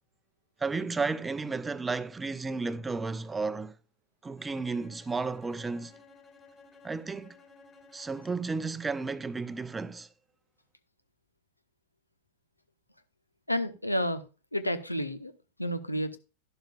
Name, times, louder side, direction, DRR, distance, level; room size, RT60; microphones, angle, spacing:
voice 1, 0.6-3.7 4.2-5.9 6.8-7.3 7.9-10.1, right 4 dB, 10° right, 0.6 m, -33 dB
Bowed string instrument, 4.4-8.6, left 4 dB, 20° left, 2.3 m, -55 dB
voice 2, 13.5-14.2 14.5-15.3 15.6-16.2, equal, 85° left, 1.1 m, -30 dB
12.5 x 11.5 x 2.4 m
figure-of-eight pair, 90°, 0 cm